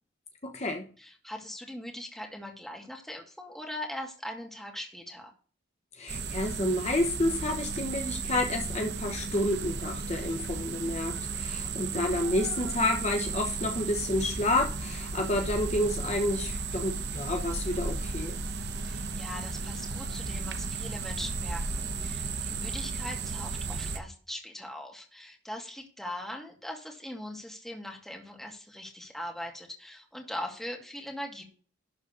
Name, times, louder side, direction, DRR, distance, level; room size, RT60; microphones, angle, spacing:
voice 1, 0.4-0.9 5.9-18.4, left 1 dB, 35° left, 3 dB, 1.1 m, -30 dB
voice 2, 1.0-5.3 18.8-31.4, left 1 dB, ahead, 1 dB, 2.3 m, -41 dB
sound 1, 6.1-24.0, right 4 dB, 60° right, 1.1 m, -34 dB
12.0 x 4.1 x 6.7 m, 0.41 s
head